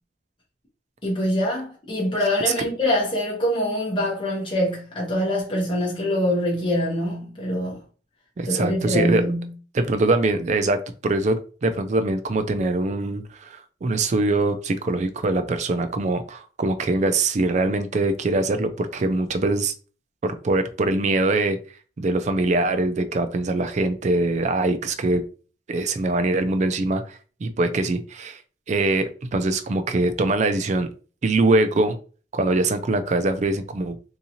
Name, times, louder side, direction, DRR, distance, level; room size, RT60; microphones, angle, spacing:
voice 1, 1.0-7.8 8.5-9.5, left 1 dB, 30° left, 1.0 m, -24 dB
voice 2, 8.4-9.2 9.7-19.7 20.2-21.6 22.0-25.2 25.7-28.4 28.7-30.9 31.2-32.0 32.3-34.0, right 2 dB, 40° right, 0.4 m, -23 dB
3.6 x 2.7 x 2.8 m
head